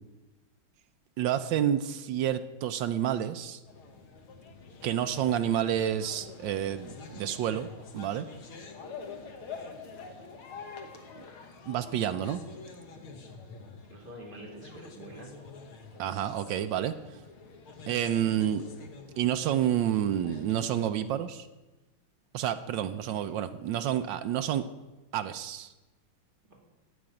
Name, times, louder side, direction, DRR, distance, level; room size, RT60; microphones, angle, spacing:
voice 1, 1.2-3.6 4.8-7.7 7.9-8.3 11.7-12.4 16.0-16.9 17.9-18.6 19.2-21.5 22.3-24.6 25.1-25.7, right 10 dB, 75° right, 11 dB, 1.2 m, -29 dB
sound 1, 3.7-20.9, left 4 dB, 90° left, 2.0 m, -46 dB
voice 2, 13.9-15.3 23.1-23.4 26.5-26.6, right 1 dB, 25° right, -1 dB, 2.3 m, -47 dB
14.5 x 5.2 x 8.8 m, 1.1 s
omnidirectional pair, 2.3 m